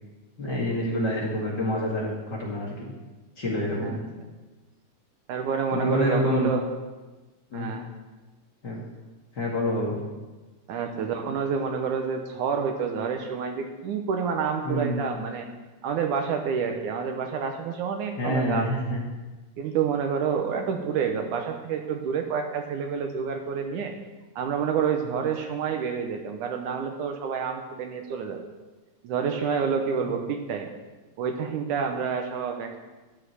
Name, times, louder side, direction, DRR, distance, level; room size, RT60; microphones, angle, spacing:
voice 1, 0.4-2.8 3.4-3.9 5.7-6.5 7.5-7.7 8.6-8.8 9.3-10.0 14.6-15.0 18.2-19.0, equal, 35° left, -4 dB, 2.4 m, -27 dB
voice 2, 5.3-6.6 7.5-7.9 10.7-15.5 15.8-18.7 19.6-24.0 24.4-28.5 29.0-30.7 31.2-32.8, right 6 dB, 75° right, 5 dB, 2.2 m, -28 dB
12.5 x 5.7 x 8.1 m, 1.2 s
omnidirectional pair, 3.8 m